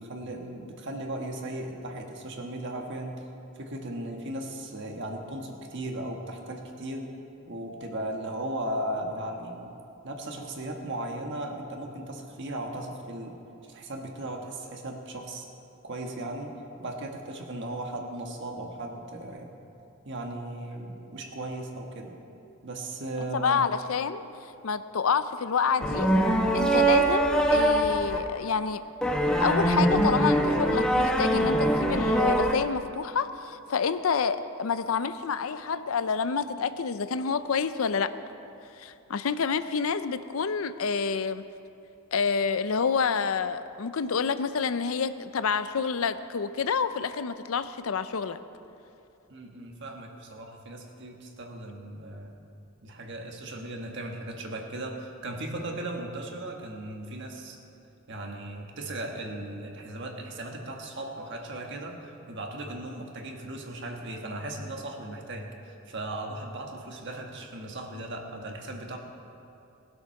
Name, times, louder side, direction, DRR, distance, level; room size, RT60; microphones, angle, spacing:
voice 1, 0.0-3.3 3.5-7.1 7.5-9.7 10.0-15.5 15.8-19.5 20.0-22.2 22.6-23.6 49.3-52.4 52.8-57.6 58.1-69.0, right 1 dB, 55° right, 2 dB, 1.5 m, -37 dB
voice 2, 23.2-24.2 24.6-26.1 26.5-28.8 29.4-38.1 38.8-41.4 42.1-48.4, left 5 dB, 75° left, 12 dB, 0.5 m, -28 dB
sound 1, 25.8-28.2 29.0-32.5, right 1 dB, 5° left, 0.9 m, -23 dB
19.0 x 7.9 x 5.8 m, 2.8 s
head